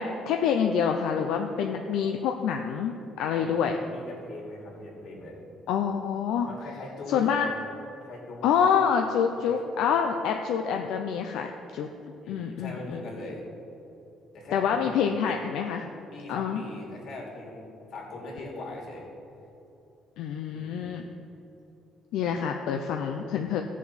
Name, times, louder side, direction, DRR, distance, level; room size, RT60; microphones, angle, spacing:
voice 1, 0.0-3.8 5.7-6.5 7.1-7.5 8.4-11.9 12.3-13.0 14.5-15.9 16.3-16.6 20.2-21.0 22.1-23.6, left 7 dB, 85° left, 4 dB, 0.6 m, -27 dB
voice 2, 3.2-5.4 6.4-7.5 8.0-8.5 9.4-9.6 12.2-13.4 14.3-15.2 16.1-17.6 17.9-19.1 20.5-21.0, left 2 dB, 60° left, -2 dB, 2.9 m, -41 dB
16.0 x 7.3 x 4.2 m, 2.9 s
cardioid pair, 150°, 0 cm